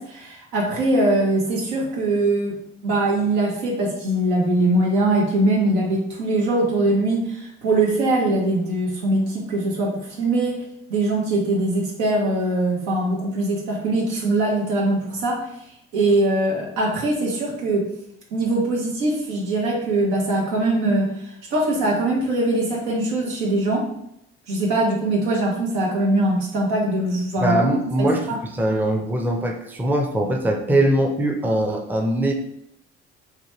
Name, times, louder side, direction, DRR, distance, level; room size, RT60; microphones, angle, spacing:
voice 1, 0.0-2.6 2.8-10.6 10.9-15.4 15.9-17.9 18.3-21.1 21.5-23.9 24.5-27.6 28.0-28.4, right 2 dB, 85° right, -3 dB, 0.9 m, -22 dB
voice 2, 27.4-28.3 28.5-32.3, right 1 dB, 5° right, 2 dB, 0.5 m, -21 dB
3.0 x 2.2 x 3.0 m, 0.78 s
hypercardioid pair, 60°, 32 cm